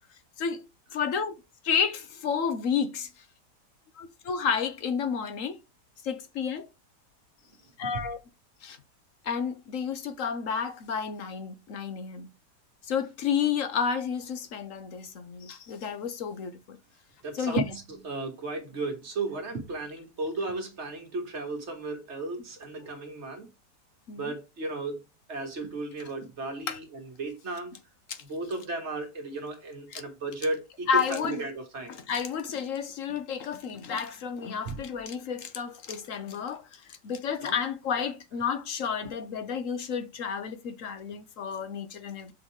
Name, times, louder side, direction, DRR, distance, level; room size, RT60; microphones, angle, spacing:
voice 1, 0.9-1.4 1.6-3.2 4.0-5.6 6.0-6.7 7.8-8.2 8.6-8.8 9.2-12.3 12.8-16.8 17.3-17.6 24.1-24.3 26.7-26.8 28.1-28.2 29.9-30.0 30.9-31.4 31.9-42.3, left 7 dB, 60° left, 1.0 m, -31 dB
voice 2, 17.2-23.5 24.2-25.0 25.3-27.8 28.3-32.0 34.7-34.8 37.4-37.6, right 3 dB, 45° right, 1.7 m, -34 dB
6.2 x 4.0 x 4.7 m
omnidirectional pair, 1.8 m